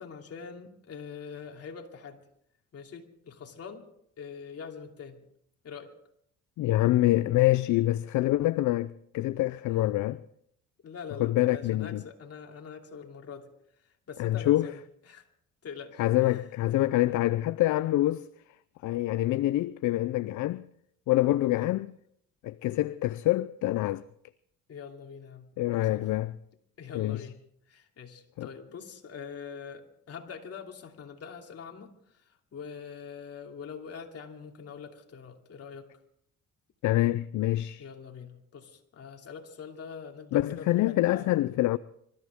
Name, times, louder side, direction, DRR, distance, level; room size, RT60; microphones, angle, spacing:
voice 1, 0.0-2.2 2.7-3.9 4.2-5.2 5.6-5.9 10.8-13.5 13.8-14.8 15.1-15.3 15.6-16.4 21.5-21.7 24.7-26.1 26.8-27.4 27.7-35.9 37.8-41.3, left 6 dB, 55° left, 2.8 m, -44 dB
voice 2, 6.6-10.2 11.2-12.0 14.2-14.7 16.0-18.3 18.8-20.7 21.1-21.9 22.4-24.0 25.6-26.3 26.9-27.2 28.4-28.5 36.8-37.8 40.3-41.8, left 16 dB, 75° left, 0.5 m, -26 dB
26.0 x 14.0 x 3.6 m
cardioid pair, 90°, 30 cm